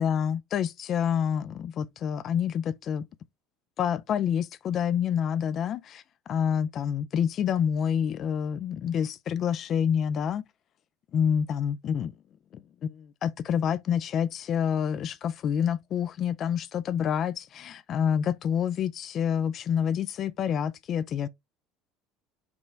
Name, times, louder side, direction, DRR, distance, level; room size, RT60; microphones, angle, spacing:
voice 1, 0.0-3.1 3.8-10.4 11.1-12.1 12.5-21.3, left 8 dB, 45° left, 0.4 m, -28 dB
5.1 x 3.1 x 3.4 m
hypercardioid pair, 70°, 0 cm